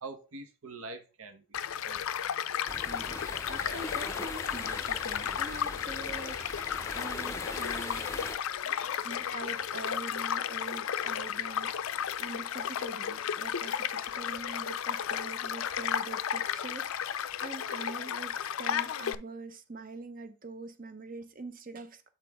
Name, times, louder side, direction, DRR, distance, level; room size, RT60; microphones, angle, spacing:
voice 1, 0.0-2.1 3.6-3.9, right 3 dB, 75° right, 1.0 m, -45 dB
Child speech kid speaking / Stream / Car passing by, 1.5-19.2, left 9 dB, 70° left, 0.4 m, -34 dB
sound 1, 2.7-8.4, left 2 dB, 15° left, 0.6 m, -40 dB
voice 2, 2.8-8.1 9.0-22.1, right 3 dB, 40° right, 0.7 m, -44 dB
8.1 x 4.2 x 3.5 m
head